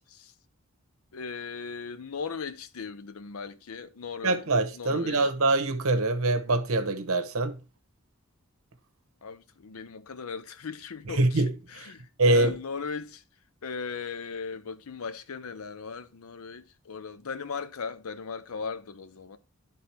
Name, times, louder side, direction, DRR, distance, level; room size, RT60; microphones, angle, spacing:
voice 1, 1.1-4.4 4.7-5.2 9.2-13.2 13.6-19.4, left 5 dB, 75° left, 0.6 m, -38 dB
voice 2, 4.2-7.6 11.2-11.5 12.2-12.5, right 2 dB, 70° right, 0.9 m, -24 dB
11.0 x 3.8 x 4.3 m
head